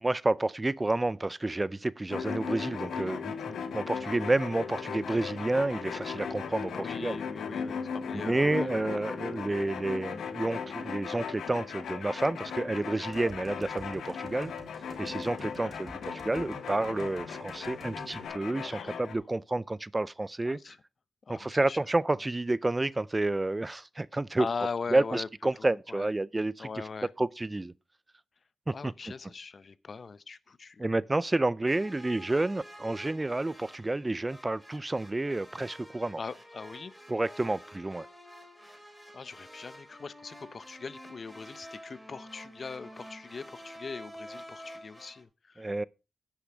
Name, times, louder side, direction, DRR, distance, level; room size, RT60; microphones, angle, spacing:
voice 1, 0.0-7.2 8.2-14.5 15.0-20.6 21.3-24.5 24.9-26.7 27.2-27.7 28.7-28.9 30.8-36.2 37.1-38.1 45.6-45.8, right 2 dB, 25° right, 0.4 m, -30 dB
sound 1, 2.1-19.1, left 6 dB, 90° left, 1.0 m, -37 dB
voice 2, 6.7-8.8 15.6-16.0 18.6-19.1 20.4-20.8 21.2-21.8 24.4-25.3 25.6-26.1 26.6-27.1 28.7-30.8 36.2-36.9 39.1-45.7, left 4 dB, 55° left, 0.6 m, -40 dB
sound 2, 13.1-18.3, right 1 dB, 60° right, 3.1 m, -49 dB
sound 3, 31.7-45.2, equal, ahead, 3.2 m, -49 dB
10.0 x 5.8 x 5.0 m
cardioid pair, 55°, 0 cm